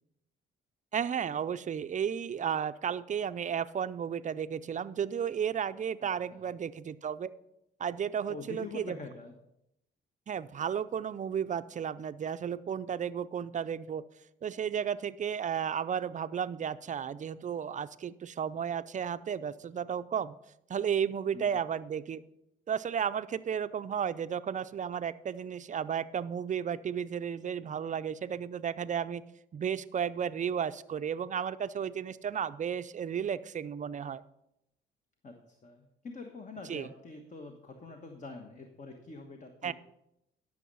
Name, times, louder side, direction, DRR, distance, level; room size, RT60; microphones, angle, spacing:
voice 1, 0.9-7.3 7.8-9.0 10.3-14.0 14.4-20.4 20.7-22.2 22.7-29.2 29.5-34.2 36.7-36.9 39.6-39.7, right 8 dB, 40° right, 13 dB, 0.5 m, -33 dB
voice 2, 8.3-9.3 21.3-21.6 35.2-39.7, left 3 dB, 40° left, 4 dB, 1.3 m, -45 dB
12.0 x 6.5 x 5.5 m, 0.84 s
cardioid pair, 90°, 20 cm